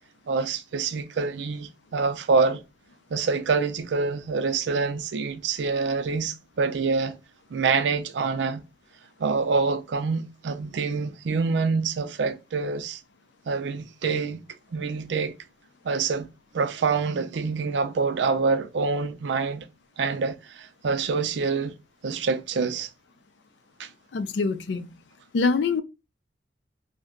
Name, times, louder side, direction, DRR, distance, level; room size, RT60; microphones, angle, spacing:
voice 1, 0.3-2.6 3.1-7.2 7.5-8.6 9.2-13.0 13.5-14.4 14.7-15.3 15.8-16.3 16.5-19.7 20.0-21.7 22.0-22.9 23.8-23.9, right 4 dB, 85° right, 0.5 m, -26 dB
voice 2, 24.1-24.9 25.3-25.8, left 4 dB, 70° left, 0.4 m, -24 dB
2.7 x 2.1 x 3.7 m
head